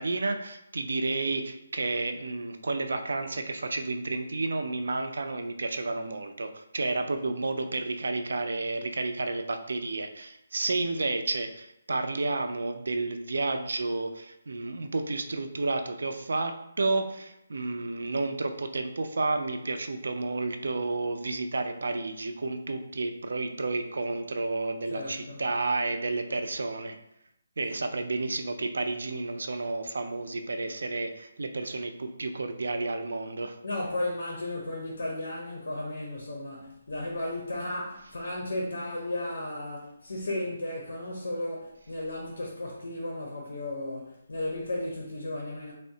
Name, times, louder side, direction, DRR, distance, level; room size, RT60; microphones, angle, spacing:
voice 1, 0.0-27.0 27.6-33.6, right 3 dB, 75° right, 0.3 m, -31 dB
voice 2, 24.9-25.4 33.6-45.7, left 1 dB, 85° left, 0.6 m, -34 dB
3.5 x 2.0 x 2.7 m
hypercardioid pair, 180°, 0 cm